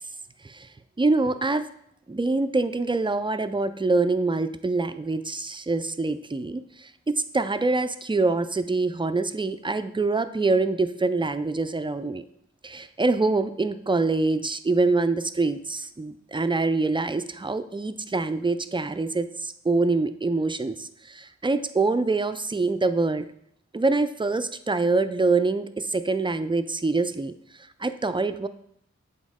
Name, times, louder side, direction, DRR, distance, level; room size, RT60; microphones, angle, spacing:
voice 1, 1.0-1.7 2.1-12.2 12.6-23.3 23.7-27.3 27.8-28.5, right 3 dB, 15° right, 10 dB, 0.4 m, -25 dB
7.4 x 4.2 x 3.6 m, 0.72 s
wide cardioid pair, 60°, 29 cm